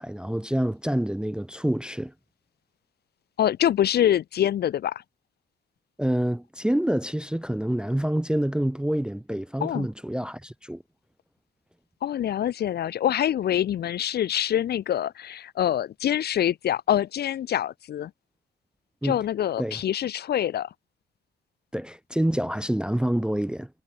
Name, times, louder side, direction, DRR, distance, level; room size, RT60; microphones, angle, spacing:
voice 1, 0.0-2.1 6.0-10.8 19.0-19.2 19.6-19.8 21.7-23.7, right 1 dB, 5° right, 0.4 m, -27 dB
voice 2, 3.4-5.0 9.6-9.9 12.0-18.1 19.0-20.7, left 10 dB, 55° left, 0.6 m, -25 dB
cardioid pair, 90°, 20 cm